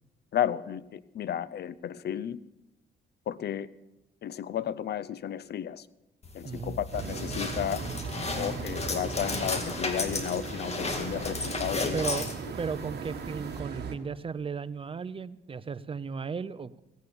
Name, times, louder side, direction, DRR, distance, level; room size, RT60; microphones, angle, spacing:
voice 1, 0.3-2.4 3.3-3.7 4.2-5.9 6.3-7.9 8.4-12.2, left 10 dB, 55° left, 18 dB, 0.6 m, -33 dB
sound 1, 6.2-13.6, left 3 dB, 30° left, 2.1 m, -35 dB
voice 2, 6.4-6.8 11.9-12.3 12.6-16.8, right 6 dB, 25° right, 15 dB, 0.6 m, -35 dB
sound 2, 6.9-14.0, right 5 dB, 55° right, 1.7 m, -38 dB
16.5 x 9.2 x 7.0 m, 0.97 s
cardioid pair, 90°, 20 cm